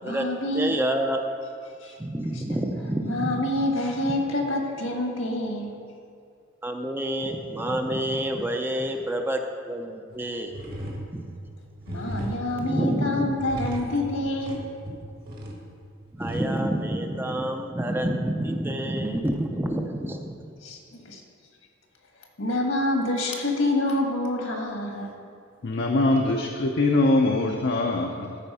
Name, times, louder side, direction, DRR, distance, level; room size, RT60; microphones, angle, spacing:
voice 1, 0.0-0.7 1.8-2.0 3.0-5.7 11.9-14.6 20.6-21.2 22.4-25.1, left 1 dB, 75° left, 2 dB, 1.5 m, -27 dB
voice 2, 0.5-1.3 2.0-3.4 4.0-4.2 6.6-9.4 9.7-10.6 11.1-11.3 11.9-12.0 12.6-13.3 16.1-20.5, right 1 dB, 10° right, 3 dB, 0.5 m, -28 dB
sound 1, 10.1-10.2 10.5-16.4, right 1 dB, 50° right, 1.5 m, -36 dB
voice 3, 25.6-28.4, left 2 dB, 55° left, 1 dB, 0.6 m, -23 dB
13.5 x 4.5 x 5.5 m, 2.3 s
head